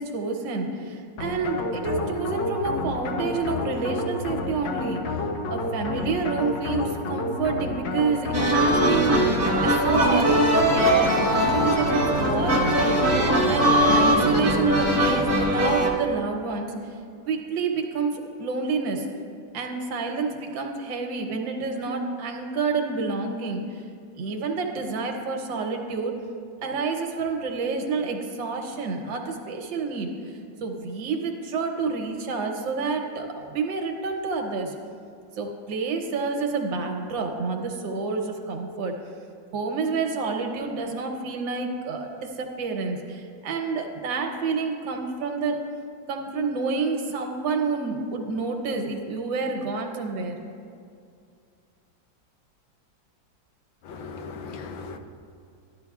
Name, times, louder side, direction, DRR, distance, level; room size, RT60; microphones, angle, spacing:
voice 1, 0.0-5.2 5.5-16.7 17.3-19.1 19.5-23.8 24.2-26.2 26.6-34.7 35.4-38.9 39.5-45.6 46.1-50.4, right 4 dB, 80° right, 3 dB, 1.6 m, -29 dB
sound 1, 1.2-14.4, left 2 dB, 70° left, 1.4 m, -30 dB
sound 2, 8.3-15.9, right 1 dB, 20° right, 0.4 m, -21 dB
voice 2, 53.8-55.0, left 4 dB, 90° left, 5 dB, 1.5 m, -38 dB
13.0 x 11.0 x 2.4 m, 2.4 s
omnidirectional pair, 2.0 m